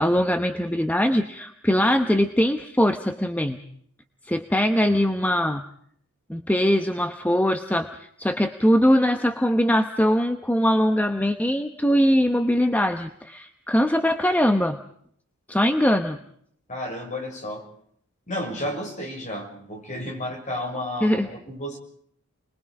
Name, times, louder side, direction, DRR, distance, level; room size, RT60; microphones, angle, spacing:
voice 1, 0.0-3.6 4.2-5.6 6.3-14.8 15.5-16.2 21.0-21.3, equal, 5° left, 7 dB, 0.9 m, -21 dB
voice 2, 16.7-17.7 18.3-21.8, left 1 dB, 35° left, 2 dB, 5.8 m, -32 dB
29.0 x 21.5 x 4.8 m, 0.65 s
head